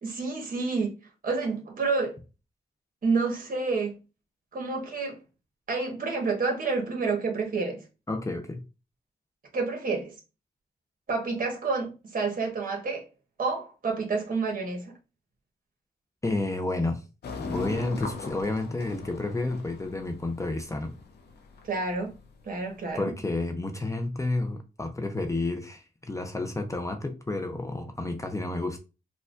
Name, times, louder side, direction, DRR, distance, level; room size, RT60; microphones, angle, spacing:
voice 1, 0.0-2.2 3.0-4.0 4.5-5.2 5.7-7.8 9.5-10.1 11.1-13.1 13.4-14.9 21.6-22.1 22.4-23.1, right 4 dB, 55° right, 1.3 m, -29 dB
voice 2, 8.1-8.6 16.2-17.0 17.4-20.9 22.9-28.8, left 2 dB, 20° left, 0.5 m, -30 dB
sound 1, 17.2-22.9, left 4 dB, 75° left, 0.7 m, -40 dB
4.4 x 2.3 x 2.5 m
cardioid pair, 90°, 17 cm